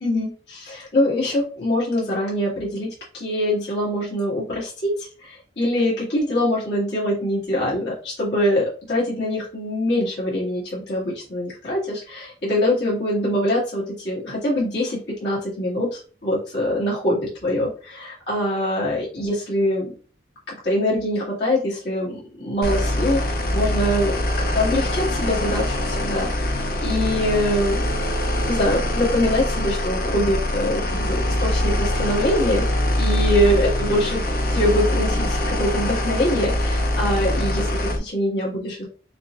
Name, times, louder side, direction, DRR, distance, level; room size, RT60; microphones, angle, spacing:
voice 1, 0.0-19.9 20.5-27.9 28.4-32.7 33.0-34.2 34.5-38.9, left 1 dB, 75° left, -7 dB, 2.0 m, -24 dB
sound 1, 22.6-38.0, left 1 dB, 55° left, 0.6 m, -23 dB
5.8 x 2.6 x 2.4 m, 0.39 s
head